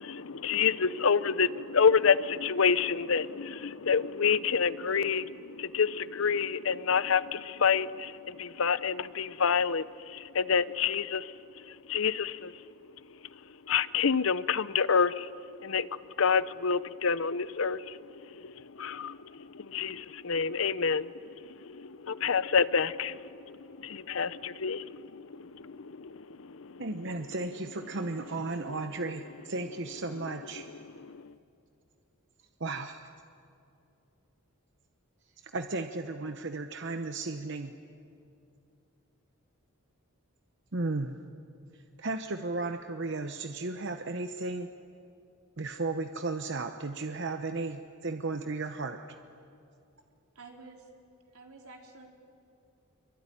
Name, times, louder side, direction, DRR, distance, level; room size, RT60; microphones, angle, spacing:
voice 1, 0.0-13.2 13.7-15.3 15.6-26.8 30.5-31.4, left 6 dB, 65° left, 16 dB, 0.7 m, -29 dB
voice 2, 26.8-30.7 32.6-33.1 35.4-37.7 40.7-41.2 41.7-44.7 45.6-49.0, right 3 dB, 55° right, 7 dB, 0.9 m, -35 dB
voice 3, 50.3-50.9 51.3-52.1, right 3 dB, 80° right, 1 dB, 4.0 m, -50 dB
25.0 x 24.0 x 10.0 m, 2.6 s
head